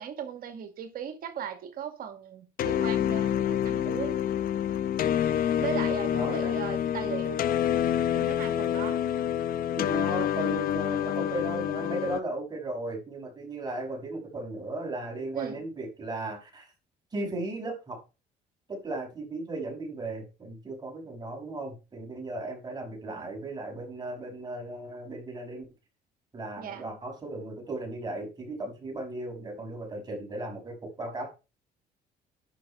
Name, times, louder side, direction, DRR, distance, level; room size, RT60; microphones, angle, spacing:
voice 1, 0.0-4.2 5.6-7.4 7.7-7.9 8.1-9.0 15.3-15.6 23.0-23.2 26.6-26.9, right 8 dB, 60° right, 2.0 m, -37 dB
sound 1, 2.6-12.2, left 10 dB, 60° left, 0.8 m, -27 dB
voice 2, 6.1-6.6 9.7-16.7 17.1-18.0 18.7-25.7 26.3-31.3, right 2 dB, 25° right, 6.0 m, -36 dB
11.0 x 5.8 x 5.5 m
cardioid pair, 110°, 17 cm